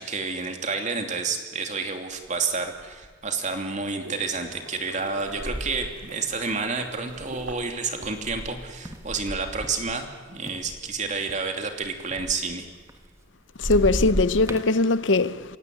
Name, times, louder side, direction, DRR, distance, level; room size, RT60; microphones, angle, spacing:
voice 1, 0.0-12.7, right 4 dB, 40° right, 2.9 m, -30 dB
sound 1, 2.2-2.3 2.8-3.2 3.8-4.0 4.9-10.2 10.5-13.3 13.6-14.7, equal, 15° right, 1.5 m, -35 dB
sound 2, 3.8-9.1, right 1 dB, 70° right, 4.0 m, -45 dB
voice 2, 13.6-15.6, left 3 dB, 70° left, 0.8 m, -21 dB
28.0 x 16.5 x 9.5 m
head